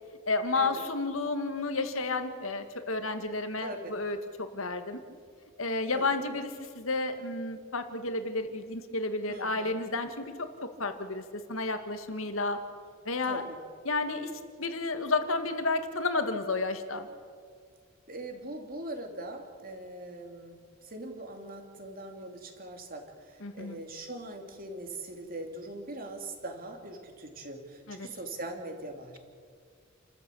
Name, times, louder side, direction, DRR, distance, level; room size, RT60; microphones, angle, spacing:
voice 1, 0.3-5.0 5.6-12.6 13.1-13.4 13.8-14.3 14.6-17.1 23.4-23.8 27.9-28.1, left 3 dB, 75° left, 8 dB, 2.0 m, -31 dB
voice 2, 3.6-3.9 5.9-6.0 9.3-9.8 13.3-13.6 18.1-29.2, right 2 dB, 45° right, 4 dB, 3.1 m, -41 dB
29.5 x 14.0 x 8.5 m, 2.1 s
head